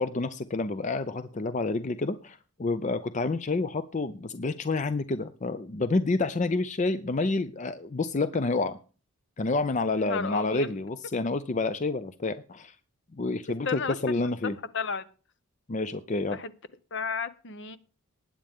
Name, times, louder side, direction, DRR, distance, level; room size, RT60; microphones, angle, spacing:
voice 1, 0.0-8.8 9.4-12.8 13.1-14.6 15.7-16.4, left 3 dB, 35° left, 0.5 m, -29 dB
voice 2, 9.9-10.7 13.6-14.0 14.4-15.1 16.3-16.5 16.9-17.8, left 4 dB, 55° left, 0.8 m, -32 dB
19.5 x 8.7 x 3.6 m
head